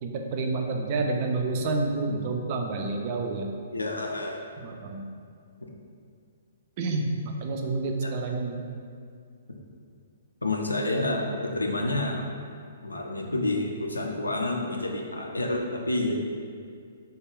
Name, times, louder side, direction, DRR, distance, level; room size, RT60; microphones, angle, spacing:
voice 1, 0.0-3.5 4.6-5.0 6.8-8.6, right 3 dB, 40° right, 2 dB, 0.4 m, -29 dB
voice 2, 3.7-4.4 8.0-8.1 10.4-12.3 12.8-16.2, left 2 dB, 85° left, 1 dB, 0.4 m, -29 dB
3.4 x 2.2 x 3.6 m, 2.2 s
figure-of-eight pair, 120°, 0 cm